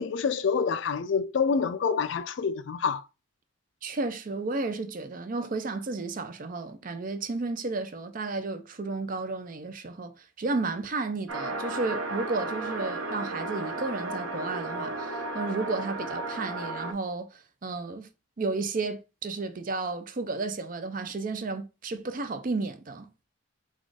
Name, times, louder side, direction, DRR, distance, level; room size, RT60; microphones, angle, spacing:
voice 1, 0.0-3.0, left 5 dB, 60° left, 0.4 m, -27 dB
voice 2, 3.8-18.1 18.4-23.1, right 3 dB, 40° right, 0.5 m, -33 dB
sound 1, 11.3-16.9, right 2 dB, 75° right, 0.9 m, -34 dB
4.1 x 2.4 x 4.7 m
head